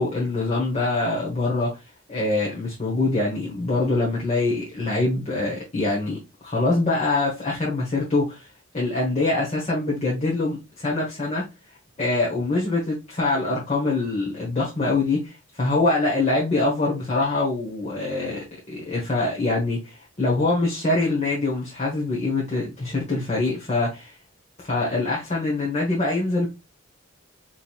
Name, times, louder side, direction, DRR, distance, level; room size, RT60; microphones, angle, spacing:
voice 1, 0.0-1.7 2.1-6.2 6.4-8.5 8.7-11.4 12.0-24.1 24.6-26.5, left 2 dB, 30° left, 1.2 m, -24 dB
5.0 x 3.0 x 2.4 m
head